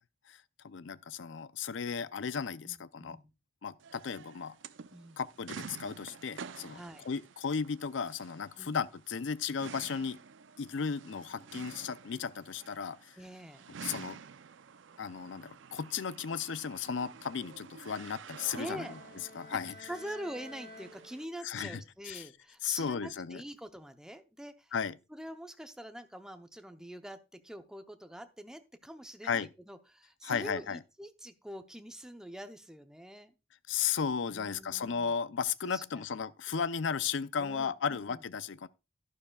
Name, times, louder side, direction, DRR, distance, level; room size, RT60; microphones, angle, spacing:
voice 1, 0.3-3.2 3.6-4.5 5.2-10.2 10.6-13.2 13.8-14.2 15.0-18.9 19.3-19.9 21.4-22.3 22.6-23.4 24.7-24.9 29.2-29.5 30.2-30.8 33.7-38.7, left 6 dB, 75° left, 0.5 m, -35 dB
voice 2, 2.6-3.3 4.9-5.2 6.7-7.1 8.6-8.8 13.2-13.6 18.5-18.9 19.9-24.7 25.1-33.3 34.3-35.1 35.6-36.0 37.4-38.2, equal, 5° right, 0.7 m, -45 dB
sound 1, 3.8-21.2, right 6 dB, 80° right, 0.6 m, -50 dB
Bowed string instrument, 18.5-21.6, left 2 dB, 40° left, 5.8 m, -52 dB
11.5 x 11.0 x 2.3 m
head